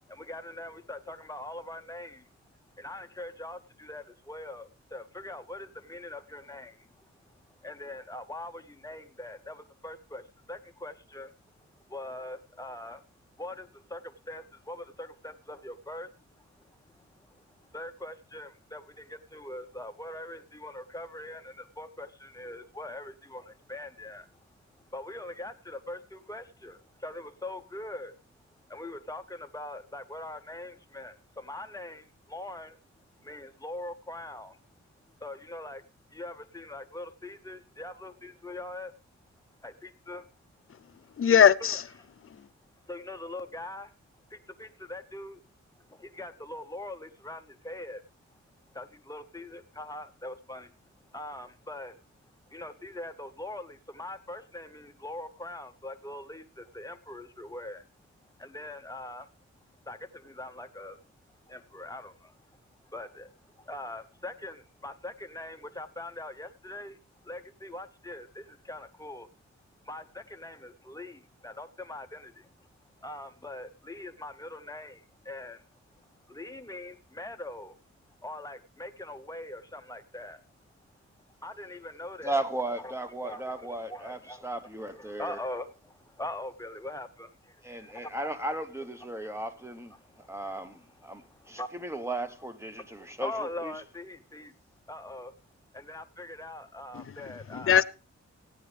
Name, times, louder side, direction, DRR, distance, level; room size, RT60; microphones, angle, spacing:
voice 1, 0.1-2.3 2.8-11.3 11.6-13.0 13.4-24.4 24.7-28.2 28.7-32.8 33.2-34.6 35.1-38.9 39.6-40.3 41.6-41.7 42.9-43.9 44.3-45.4 45.8-48.0 48.7-50.7 51.1-52.0 52.5-57.8 58.4-59.3 59.8-61.0 61.5-62.4 62.8-69.3 69.8-72.7 73.0-75.7 76.3-77.8 78.2-80.4 81.4-82.9 83.2-84.5 84.9-88.3 89.1-89.2 90.0-90.8 91.1-91.9 92.9-94.5 94.9-95.4 95.7-97.8, left 1 dB, 10° left, 0.8 m, -42 dB
voice 2, 41.2-41.8 42.3-42.5 96.9-97.1 97.5-97.8, left 8 dB, 50° left, 0.5 m, -21 dB
voice 3, 82.2-85.4 87.6-89.9 90.3-93.7, right 1 dB, 10° right, 0.9 m, -36 dB
16.5 x 9.3 x 3.3 m
wide cardioid pair, 140°, 29 cm